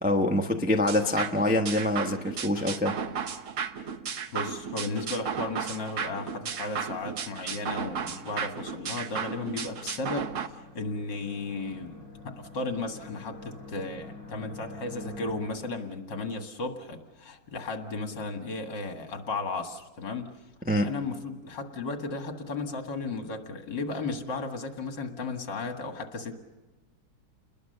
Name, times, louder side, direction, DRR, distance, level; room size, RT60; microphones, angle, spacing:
voice 1, 0.0-3.0 20.7-20.9, left 1 dB, 5° right, 2 dB, 0.7 m, -25 dB
sound 1, 0.9-10.5, right 6 dB, 50° right, 1.0 m, -34 dB
sound 2, 3.3-15.4, left 3 dB, 35° left, 3.9 m, -49 dB
voice 2, 4.3-20.3 20.8-26.4, left 3 dB, 65° left, 5 dB, 2.6 m, -35 dB
29.5 x 21.0 x 6.7 m, 1.2 s
omnidirectional pair, 2.2 m